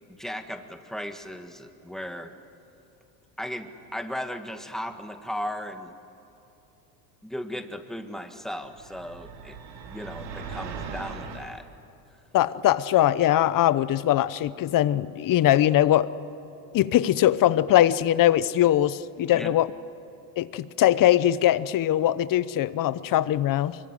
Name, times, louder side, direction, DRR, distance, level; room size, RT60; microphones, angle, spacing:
voice 1, 0.1-2.3 3.4-5.9 7.2-9.6 9.8-11.7 19.3-19.5, equal, ahead, 6 dB, 1.7 m, -36 dB
sound 1, 8.6-11.5, right 5 dB, 85° right, 3.2 m, -39 dB
voice 2, 12.3-16.1 16.7-19.7 20.4-23.8, left 13 dB, 40° left, 17 dB, 0.9 m, -21 dB
24.0 x 22.5 x 10.0 m, 2.9 s
supercardioid pair, 110°, 49 cm